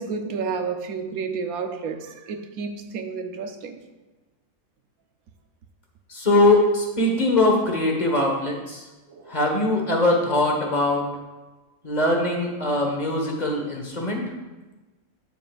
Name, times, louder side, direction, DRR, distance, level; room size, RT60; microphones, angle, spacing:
voice 1, 0.0-3.8 9.1-9.4, right 5 dB, 85° right, 7 dB, 1.2 m, -31 dB
voice 2, 6.1-8.8 9.3-11.0 11.8-14.2, left 2 dB, 30° left, 0 dB, 1.5 m, -21 dB
12.5 x 7.1 x 2.5 m, 1.1 s
omnidirectional pair, 1.5 m